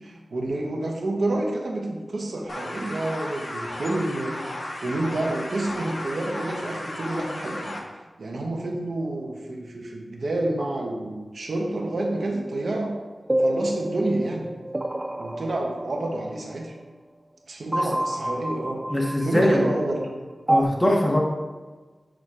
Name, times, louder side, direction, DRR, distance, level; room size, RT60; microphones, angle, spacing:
voice 1, 0.0-7.7 8.2-12.9 13.4-14.5 15.2-16.7 17.5-20.1, right 2 dB, 75° right, 0 dB, 1.0 m, -29 dB
sound 1, 2.5-7.8, left 1 dB, 65° left, 1.1 m, -34 dB
sound 2, 13.3-16.3 17.7-19.7 20.5-20.6, right 1 dB, 25° right, 0.3 m, -27 dB
voice 2, 18.9-19.7 20.5-21.2, left 1 dB, 20° left, -2 dB, 1.4 m, -21 dB
6.4 x 6.0 x 2.5 m, 1.4 s
cardioid pair, 50°, 0 cm